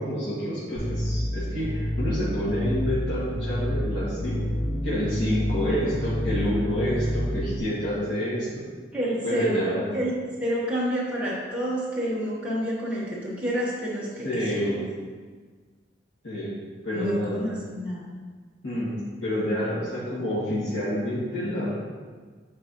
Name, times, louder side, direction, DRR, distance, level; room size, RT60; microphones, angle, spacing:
voice 1, 0.0-4.4 4.8-8.5 9.2-9.9 14.2-14.8 16.2-16.5 16.8-17.4 18.6-18.9 19.2-21.7, equal, 85° left, -11 dB, 2.0 m, -28 dB
sound 1, 0.7-7.6, equal, 55° left, 2.0 m, -29 dB
voice 2, 8.9-9.6 9.9-10.1 10.4-14.7 16.9-18.1, equal, 5° right, -7 dB, 1.2 m, -29 dB
9.1 x 4.8 x 3.0 m, 1.5 s
head